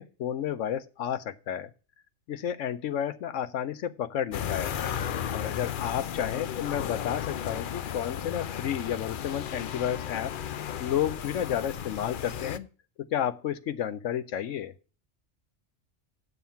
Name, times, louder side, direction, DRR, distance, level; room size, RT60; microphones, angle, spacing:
voice 1, 0.0-1.7 2.3-4.8 5.3-10.3 10.8-12.7 13.0-14.7, left 10 dB, 75° left, 13 dB, 1.0 m, -31 dB
sound 1, 4.3-12.6, left 9 dB, 55° left, 0.6 m, -34 dB
8.4 x 7.2 x 5.6 m, 0.35 s
omnidirectional pair, 1.3 m